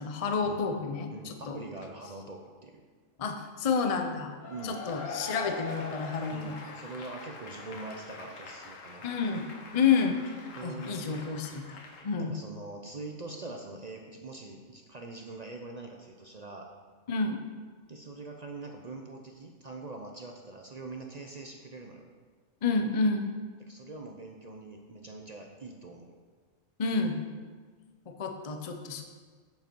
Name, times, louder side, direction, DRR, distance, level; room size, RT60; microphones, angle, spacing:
voice 1, 0.0-1.6 3.2-4.3 4.6-6.5 9.0-9.5 9.7-10.2 10.6-12.3 17.1-17.4 22.6-23.3 26.8-27.2 28.1-29.0, left 5 dB, 35° left, 4 dB, 0.6 m, -29 dB
voice 2, 1.1-2.8 4.5-4.8 6.3-9.0 10.5-11.2 12.2-16.7 17.9-22.1 23.7-26.1, right 3 dB, 45° right, 2 dB, 0.6 m, -43 dB
Cheering / Applause / Crowd, 4.4-12.1, left 3 dB, 75° left, 1.4 m, -43 dB
8.2 x 7.0 x 4.5 m, 1.5 s
omnidirectional pair, 1.4 m